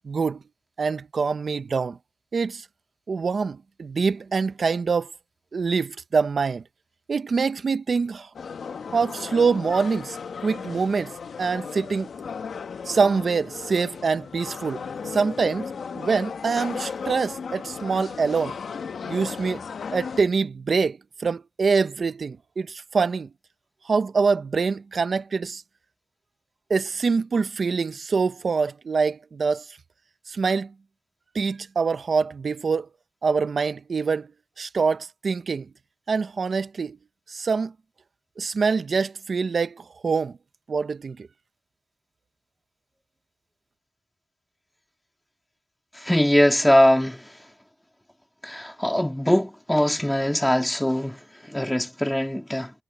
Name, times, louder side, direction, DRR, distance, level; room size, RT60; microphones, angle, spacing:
voice 1, 0.0-0.4 0.8-2.0 2.3-2.6 3.1-5.1 5.5-6.6 7.1-8.3 8.9-11.1 11.4-12.1 12.9-15.7 15.9-18.5 19.0-19.6 19.9-23.3 23.9-25.6 26.7-29.6 30.3-30.7 31.3-32.9 33.2-34.3 34.6-35.7 36.1-37.0 37.3-37.7 38.4-40.4 40.7-41.3, right 5 dB, 55° right, 0.7 m, -25 dB
sound 1, 8.3-20.2, left 6 dB, 75° left, 1.2 m, -35 dB
voice 2, 45.9-47.3 48.4-51.2 51.5-52.7, left 1 dB, 5° left, 2.9 m, -21 dB
wide cardioid pair, 135°, 0 cm